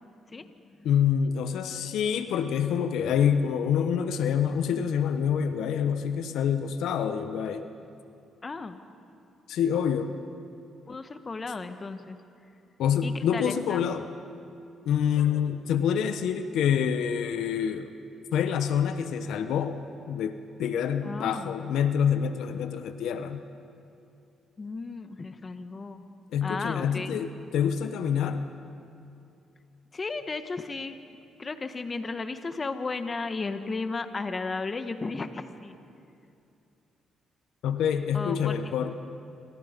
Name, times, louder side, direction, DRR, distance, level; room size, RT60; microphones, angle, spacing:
voice 1, 0.3-0.9 8.4-8.8 10.9-12.2 13.0-13.8 21.0-21.5 24.6-26.0 26.4-27.2 29.9-31.0 31.4-35.8 38.1-38.7, left 3 dB, 30° left, 9 dB, 1.4 m, -34 dB
voice 2, 0.8-7.7 9.5-10.1 12.8-14.1 14.9-17.9 18.3-19.8 20.1-23.4 26.3-28.5 37.6-39.0, left 8 dB, 80° left, 9 dB, 1.1 m, -26 dB
27.0 x 27.0 x 5.3 m, 2.6 s
cardioid pair, 90°, 0 cm